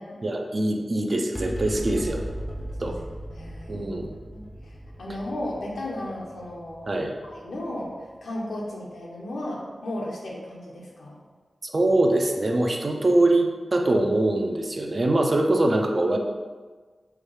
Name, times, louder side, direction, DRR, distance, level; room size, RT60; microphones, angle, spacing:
voice 1, 0.2-2.2 2.8-3.0 3.7-4.1 6.9-7.1 11.6-16.2, right 1 dB, 45° right, 2 dB, 0.4 m, -23 dB
sound 1, 1.3-8.0, right 1 dB, 20° left, 0.4 m, -37 dB
voice 2, 3.3-3.9 4.3-6.9 7.2-11.1, left 1 dB, 85° left, -3 dB, 0.8 m, -35 dB
4.6 x 2.3 x 3.1 m, 1.4 s
cardioid pair, 60°, 0 cm